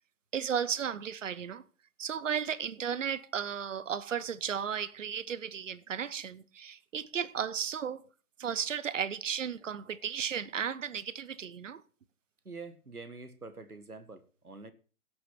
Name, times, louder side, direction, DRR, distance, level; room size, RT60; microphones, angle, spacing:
voice 1, 0.3-1.6 2.0-8.0 8.4-11.8, right 8 dB, 60° right, 1.0 m, -34 dB
voice 2, 12.4-14.7, right 3 dB, 85° right, 1.8 m, -46 dB
16.5 x 6.8 x 6.0 m
figure-of-eight pair, 130°, 43 cm